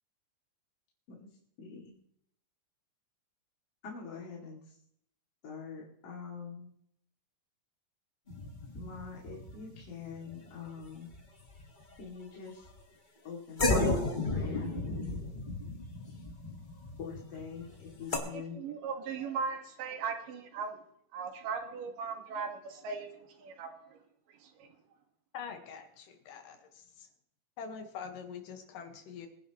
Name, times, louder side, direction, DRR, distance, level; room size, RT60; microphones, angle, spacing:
voice 1, 1.6-2.0 3.8-4.8 5.4-6.7 8.7-11.1 12.0-12.7 13.2-14.7 17.0-18.6, left 5 dB, 50° left, 3.4 m, -44 dB
sound 1, 8.3-11.2 11.4-12.0 12.7-12.8 13.6-18.2, left 2 dB, 25° left, 1.0 m, -33 dB
voice 2, 18.3-20.8 21.1-24.8, right 5 dB, 80° right, 3.3 m, -39 dB
voice 3, 25.3-27.1 27.6-29.3, left 6 dB, 85° left, 3.1 m, -44 dB
22.5 x 10.5 x 3.1 m
omnidirectional pair, 3.8 m